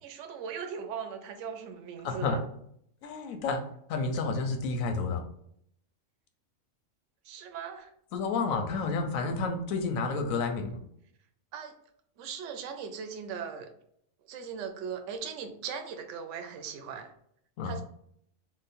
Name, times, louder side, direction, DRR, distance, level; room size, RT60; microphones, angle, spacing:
voice 1, 0.0-2.4 7.2-7.9 11.5-11.7 12.2-13.7 14.2-17.1 17.6-17.8, right 6 dB, 70° right, 6 dB, 0.9 m, -39 dB
voice 2, 2.0-2.4 3.0-3.6 3.9-5.2 8.1-10.8 17.6-17.8, left 4 dB, 85° left, 5 dB, 1.0 m, -30 dB
3.0 x 2.1 x 4.1 m, 0.70 s
omnidirectional pair, 1.4 m